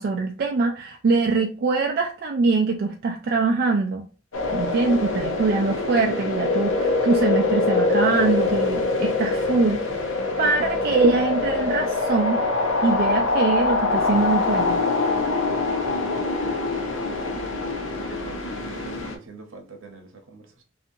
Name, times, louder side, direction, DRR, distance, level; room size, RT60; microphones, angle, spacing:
voice 1, 0.0-4.0 4.5-12.4 12.8-14.8, right 3 dB, 50° right, 0.4 m, -23 dB
sound 1, 4.3-19.2, left 3 dB, 75° left, 0.7 m, -24 dB
voice 2, 15.8-17.7 18.0-20.6, right 2 dB, 85° right, 0.8 m, -44 dB
2.7 x 2.4 x 2.5 m
head